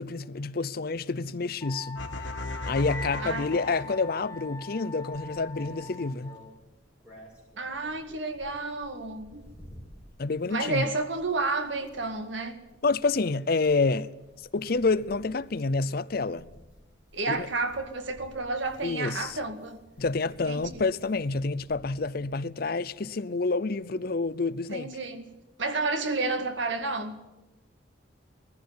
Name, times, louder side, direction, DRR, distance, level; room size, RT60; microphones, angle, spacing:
voice 1, 0.0-2.0 2.7-6.4 10.2-10.9 12.8-14.1 14.5-16.5 17.3-17.5 18.8-19.4 20.0-24.9, left 3 dB, 55° left, 0.6 m, -28 dB
Wind instrument woodwind instrument, 1.6-6.6, left 3 dB, 15° left, 0.8 m, -43 dB
sound 1, 2.0-4.4, left 2 dB, 75° left, 1.4 m, -36 dB
voice 2, 3.2-3.6 7.6-9.5 10.5-12.6 17.1-19.8 20.5-20.8 24.7-25.3 25.6-27.2, right 3 dB, 80° right, 2.0 m, -31 dB
sound 2, 5.1-22.3, equal, 5° right, 7.0 m, -54 dB
19.5 x 14.5 x 9.6 m
head